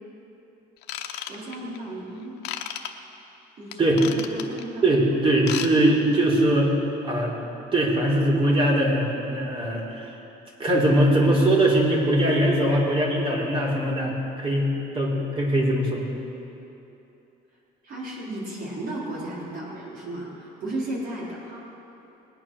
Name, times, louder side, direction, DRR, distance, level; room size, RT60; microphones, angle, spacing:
Ratchet pawl / Tools, 0.8-1.8 2.4-2.9 3.7-4.6 5.3-5.7 6.0-6.2 6.7-6.8, left 11 dB, 90° left, 0.9 m, -33 dB
voice 1, 1.3-2.4 3.6-4.8 5.1-5.2 17.8-21.6, right 1 dB, 60° right, -6 dB, 4.0 m, -34 dB
voice 2, 4.8-6.7 7.0-7.3 7.7-10.1 10.6-16.0, right 1 dB, 30° right, -3 dB, 3.6 m, -21 dB
20.5 x 9.0 x 6.2 m, 3.0 s
cardioid pair, 110°, 17 cm